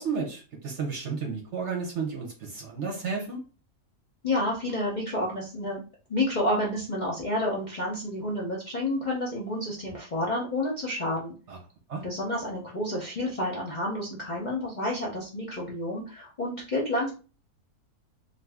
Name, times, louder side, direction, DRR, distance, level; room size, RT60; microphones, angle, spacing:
voice 1, 0.0-3.4 11.5-11.6 11.9-12.0, right 5 dB, 55° right, 0 dB, 0.9 m, -32 dB
voice 2, 4.2-5.8 6.1-11.3 12.0-17.1, left 1 dB, 50° left, -3 dB, 0.5 m, -30 dB
2.5 x 2.5 x 3.4 m, 0.35 s
omnidirectional pair, 1.7 m